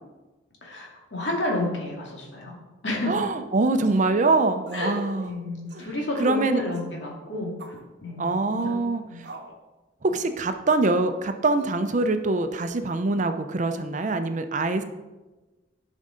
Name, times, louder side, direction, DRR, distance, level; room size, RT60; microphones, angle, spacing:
voice 1, 0.6-3.2 4.7-7.8 8.0-8.7 9.1-9.2, left 1 dB, 85° left, -2 dB, 2.2 m, -31 dB
voice 2, 3.1-5.3 6.2-6.7 8.2-9.0 10.0-14.8, right 3 dB, 45° right, 8 dB, 0.6 m, -24 dB
sound 1, 3.8-4.1 4.7-5.0 5.2-5.3 5.7-5.9 6.7-7.0 7.6-7.8 8.5-8.7 9.2-9.6 10.1-10.3 10.8-11.0 11.6-12.0, right 2 dB, 65° right, 0.9 m, -44 dB
11.0 x 5.4 x 3.8 m, 1.2 s
head